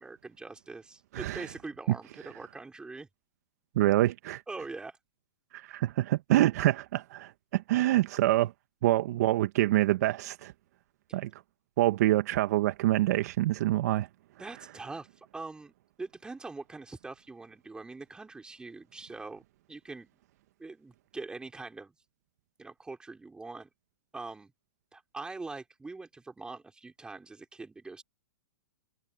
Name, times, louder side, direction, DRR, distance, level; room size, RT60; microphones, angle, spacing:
voice 1, 0.0-3.1 4.5-5.0 14.4-19.4 19.7-20.2 20.6-21.9 22.6-23.7 24.1-24.5 24.9-28.0, right 3 dB, 10° right, 5.1 m, -43 dB
voice 2, 1.1-1.5 3.8-4.4 5.5-8.5 8.8-10.5 11.1-11.3 11.8-14.1, right 15 dB, 55° right, 1.6 m, -26 dB
hypercardioid pair, 125°, 10 cm